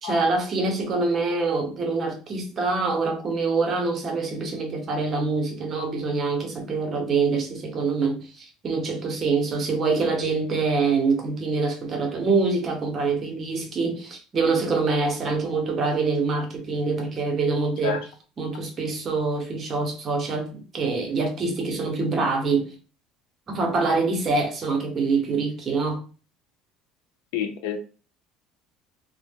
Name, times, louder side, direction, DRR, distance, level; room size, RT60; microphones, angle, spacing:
voice 1, 0.0-18.0 18.4-22.7 23.5-26.0, right 4 dB, 35° right, 0.8 m, -25 dB
voice 2, 27.3-27.8, left 7 dB, 85° left, 0.4 m, -28 dB
2.0 x 2.0 x 3.4 m
cardioid pair, 115°, 0 cm